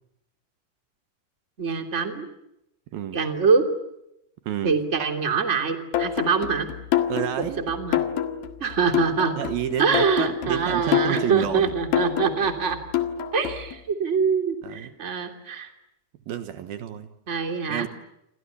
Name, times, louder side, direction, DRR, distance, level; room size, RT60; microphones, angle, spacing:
voice 1, 1.6-2.2 3.1-3.6 4.6-6.7 7.4-8.0 8.6-9.4 9.8-12.8 13.3-15.7 17.3-17.9, right 5 dB, 20° right, 6 dB, 2.8 m, -24 dB
voice 2, 4.5-4.8 7.1-7.6 9.4-11.7 14.6-14.9 16.3-17.1 17.7-17.9, right 10 dB, 70° right, 10 dB, 3.0 m, -30 dB
sound 1, 5.9-13.8, left 10 dB, 70° left, 3.5 m, -27 dB
29.0 x 26.0 x 7.0 m, 0.82 s
omnidirectional pair, 4.6 m